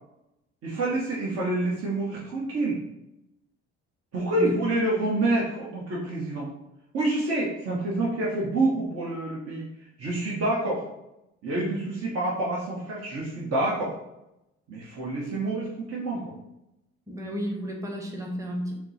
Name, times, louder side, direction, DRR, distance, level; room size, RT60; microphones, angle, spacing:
voice 1, 0.6-2.8 4.1-6.5 6.9-9.7 10.0-10.8 11.4-13.9 14.7-16.3, right 2 dB, 50° right, -5 dB, 1.1 m, -27 dB
voice 2, 17.1-18.8, equal, 10° right, 1 dB, 0.9 m, -32 dB
4.2 x 2.1 x 4.1 m, 0.88 s
supercardioid pair, 80°, 30 cm